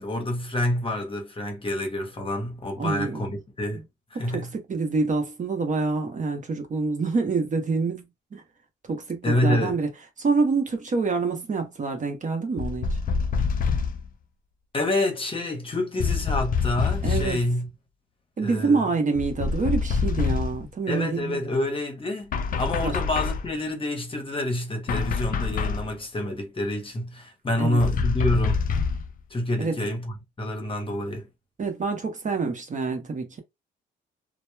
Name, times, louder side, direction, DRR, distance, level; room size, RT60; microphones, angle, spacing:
voice 1, 0.0-3.8 4.1-4.5 9.2-9.8 14.7-17.7 18.4-18.8 20.9-28.7 29.3-31.3, left 1 dB, 25° left, 0.8 m, -28 dB
voice 2, 2.8-3.2 4.2-8.0 8.3-8.4 8.9-9.9 10.2-12.9 17.0-17.5 18.4-21.6 22.8-23.0 27.6-27.8 29.6-29.8 31.6-33.4, right 4 dB, 40° right, 0.8 m, -26 dB
sound 1, 12.6-14.1 16.0-17.4 19.2-20.6 22.3-23.5 24.9-25.9 27.8-29.1, left 5 dB, 45° left, 0.4 m, -26 dB
2.8 x 2.0 x 2.2 m
cardioid pair, 90°, 20 cm